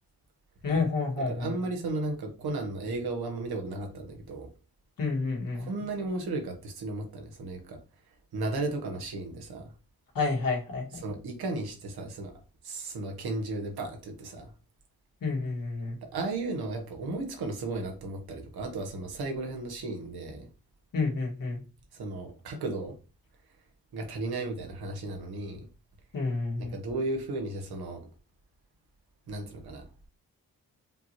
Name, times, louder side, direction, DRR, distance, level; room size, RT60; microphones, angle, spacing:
voice 1, 0.6-1.5 5.0-5.7 10.2-11.0 15.2-15.9 20.9-21.6 26.1-26.7, left 3 dB, 65° left, 1.8 m, -29 dB
voice 2, 1.2-4.5 5.5-7.8 8.3-9.7 10.9-12.3 12.6-14.5 16.1-20.5 21.9-23.0 23.9-25.7 26.6-28.0 29.3-29.8, right 2 dB, 80° right, 1.1 m, -34 dB
5.2 x 2.9 x 2.9 m
cardioid pair, 60°, 37 cm